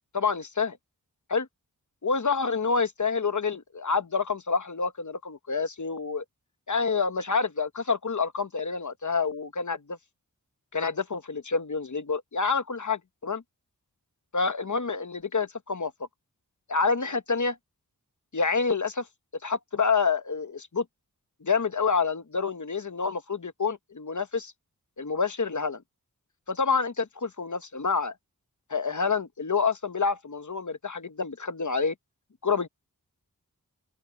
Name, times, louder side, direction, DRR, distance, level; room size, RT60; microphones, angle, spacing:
voice 1, 0.1-0.8 1.3-1.5 2.0-6.2 6.7-10.0 10.7-13.4 14.3-15.9 16.7-17.6 18.3-19.0 19.4-20.8 21.4-24.5 25.0-25.8 26.5-28.1 28.7-31.9 32.4-32.7, left 5 dB, 55° left, 1.1 m, -28 dB
open air
wide cardioid pair, 65°, 36 cm